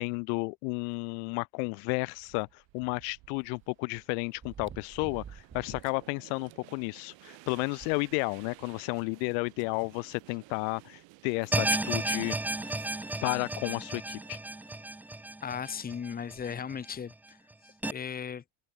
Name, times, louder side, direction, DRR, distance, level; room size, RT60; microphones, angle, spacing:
voice 1, 0.0-12.3 13.2-14.4, left 40 dB or more, 75° left, 0.8 m, -32 dB
sound 1, 1.8-13.7, right 22 dB, 60° right, 7.5 m, -56 dB
sound 2, 2.4-2.5 4.3-6.1 6.5-6.6 7.0-7.1 7.5-8.6 9.6-9.7 11.1-11.2 11.8-11.9 12.6-12.8 14.2-14.3 14.5-14.6 16.3-16.6 17.3-17.4, right 8 dB, 25° right, 2.1 m, -48 dB
sound 3, 11.5-16.7 17.1-17.2 17.8-17.9, right 2 dB, 5° right, 0.4 m, -33 dB
voice 2, 15.4-17.4 17.6-18.4, left 7 dB, 20° left, 1.2 m, -37 dB
cardioid pair, 150°, 50 cm